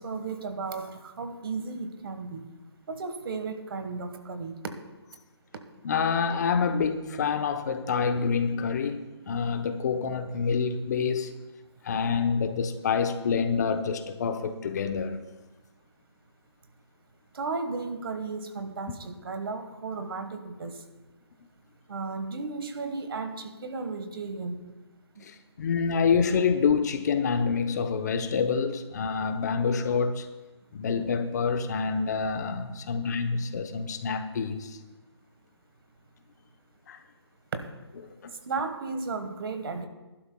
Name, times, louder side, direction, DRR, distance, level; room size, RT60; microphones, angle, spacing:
voice 1, 0.0-2.5 2.9-4.6 17.3-20.8 21.9-24.7 25.2-25.3 38.5-39.9, right 4 dB, 55° right, 1.4 m, -34 dB
voice 2, 5.8-11.3 11.8-15.2 25.2-30.3 30.7-34.8 36.9-37.0 38.0-38.3, left 5 dB, 40° left, 0.8 m, -27 dB
21.5 x 11.5 x 2.2 m
hypercardioid pair, 155°, 14 cm